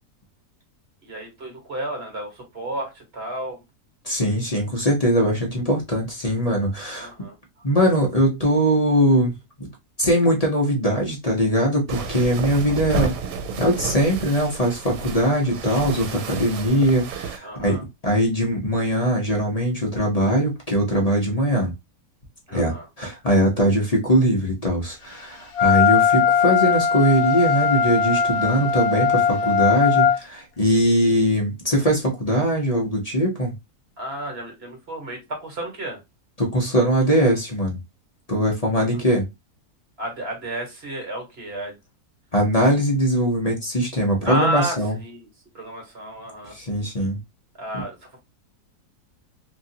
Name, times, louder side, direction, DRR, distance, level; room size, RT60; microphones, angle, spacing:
voice 1, 1.0-3.6 6.9-7.3 17.4-17.8 22.5-22.9 34.0-36.0 38.8-38.9 40.0-41.7 44.2-45.3 45.5-46.6 47.6-48.2, right 1 dB, 40° right, 1.4 m, -31 dB
voice 2, 4.0-7.1 7.6-9.3 9.6-9.7 10.0-13.2 13.6-21.7 22.5-33.5 36.4-37.8 38.3-39.3 42.3-45.0 46.5-47.2, equal, 35° left, 0.7 m, -21 dB
sound 1, 11.9-17.4, right 5 dB, 85° right, 1.2 m, -31 dB
Wind instrument woodwind instrument, 25.6-30.2, left 7 dB, 70° left, 1.1 m, -19 dB
2.9 x 2.5 x 2.7 m
omnidirectional pair, 1.7 m